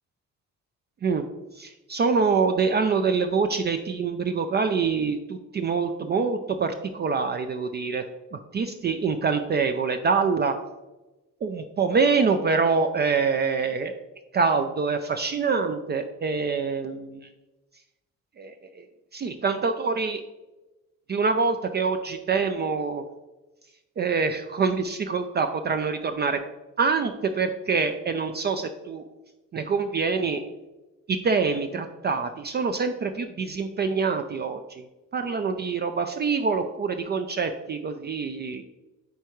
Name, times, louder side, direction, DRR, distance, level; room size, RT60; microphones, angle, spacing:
voice 1, 1.5-8.0 8.3-10.5 11.4-13.9 14.3-17.2 18.4-18.8 19.1-20.2 21.1-23.0 24.0-26.4 26.8-29.1 29.5-30.4 31.1-34.8 35.1-38.6, right 5 dB, 35° right, 7 dB, 0.4 m, -25 dB
9.3 x 3.4 x 3.0 m, 1.1 s
cardioid pair, 90°, 30 cm